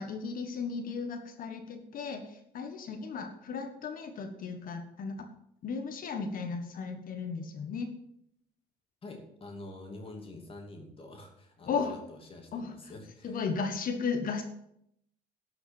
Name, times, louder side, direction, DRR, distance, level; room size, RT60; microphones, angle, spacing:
voice 1, 0.0-5.3 5.6-7.9 11.6-12.0 12.5-12.7 13.2-14.4, left 5 dB, 55° left, 6 dB, 1.5 m, -35 dB
voice 2, 9.0-13.4, left 2 dB, 35° left, 2 dB, 2.7 m, -47 dB
12.0 x 6.0 x 7.1 m, 0.75 s
cardioid pair, 110°, 17 cm